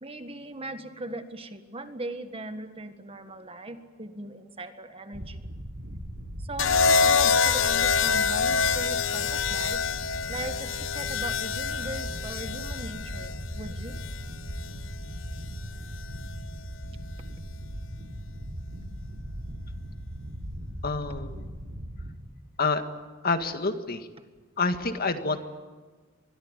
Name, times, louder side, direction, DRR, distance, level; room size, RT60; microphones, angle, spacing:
voice 1, 0.0-5.6 6.4-14.0, right 2 dB, 30° right, 8 dB, 1.7 m, -39 dB
sound 1, 5.1-22.1, equal, 85° right, 3.9 m, -38 dB
sound 2, 6.6-14.7 15.9-16.3, left 5 dB, 65° left, 1.0 m, -26 dB
voice 2, 20.8-21.5 22.6-22.8 23.2-24.1 24.6-25.4, left 3 dB, 50° left, 7 dB, 1.9 m, -27 dB
26.0 x 21.5 x 9.7 m, 1.3 s
head